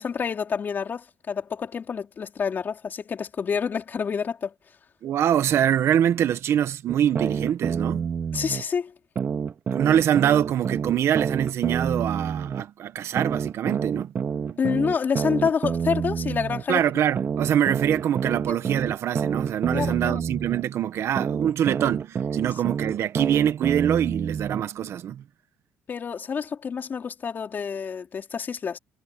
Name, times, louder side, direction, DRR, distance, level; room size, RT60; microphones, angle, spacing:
voice 1, 0.0-4.5 8.3-8.9 14.6-16.8 19.7-20.2 25.9-28.8, left 6 dB, 40° left, 4.4 m, -28 dB
voice 2, 5.0-8.1 9.7-14.6 16.7-25.2, right 10 dB, 60° right, 1.3 m, -24 dB
sound 1, 6.9-8.6 9.2-12.6 13.2-16.6 17.2-20.6 21.2-24.6, right 7 dB, 40° right, 2.0 m, -28 dB
cardioid pair, 120°, 5 cm